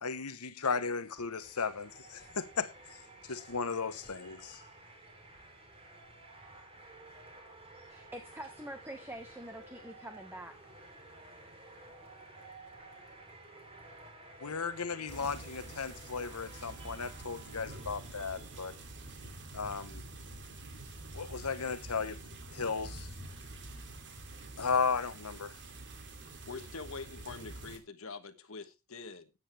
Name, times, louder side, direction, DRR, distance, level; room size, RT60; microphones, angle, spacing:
voice 1, 0.0-2.7 3.3-4.6 14.4-18.8 19.5-20.0 21.1-22.2 22.5-23.1 24.6-25.5, left 5 dB, 85° left, 1.2 m, -35 dB
sound 1, 0.8-19.2, right 2 dB, 25° right, 3.5 m, -54 dB
voice 2, 7.9-10.7, right 1 dB, 10° right, 1.2 m, -45 dB
sound 2, 15.1-27.8, right 2 dB, 55° right, 2.6 m, -47 dB
voice 3, 26.3-29.3, left 4 dB, 65° left, 1.3 m, -45 dB
13.5 x 9.5 x 3.4 m
head